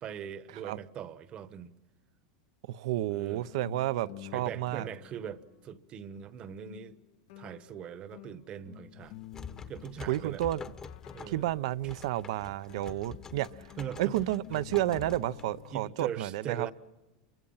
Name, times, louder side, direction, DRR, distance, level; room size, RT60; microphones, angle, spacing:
voice 1, 0.0-1.7 3.1-3.5 4.3-7.0 7.4-9.2 9.7-10.4 11.1-11.5 13.8-14.2 15.7-16.7, right 9 dB, 30° right, 1.1 m, -41 dB
voice 2, 2.7-4.9 10.1-10.6 11.3-13.7 14.0-16.7, right 14 dB, 70° right, 0.8 m, -31 dB
sound 1, 3.3-5.9 6.2-6.3 6.7-16.0, left 16 dB, 60° left, 1.0 m, -51 dB
sound 2, 9.0-15.8, left 5 dB, 20° left, 1.0 m, -47 dB
28.0 x 24.0 x 5.7 m
supercardioid pair, 145°, 3 cm